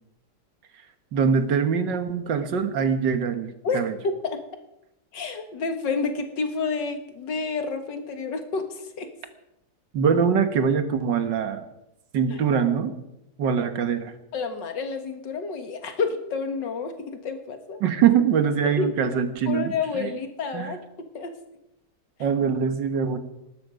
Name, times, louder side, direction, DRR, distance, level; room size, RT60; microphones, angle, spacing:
voice 1, 1.1-3.9 9.9-11.7 12.1-12.9 13.4-14.1 17.8-20.1 20.5-20.7 22.2-23.2, right 7 dB, 90° right, 9 dB, 2.0 m, -23 dB
voice 2, 3.6-4.4 5.1-9.1 12.3-12.4 14.3-17.8 18.8-18.9 19.5-20.8 21.1-21.3, left 4 dB, 85° left, 7 dB, 2.3 m, -29 dB
19.0 x 12.5 x 5.2 m, 0.87 s
omnidirectional pair, 1.9 m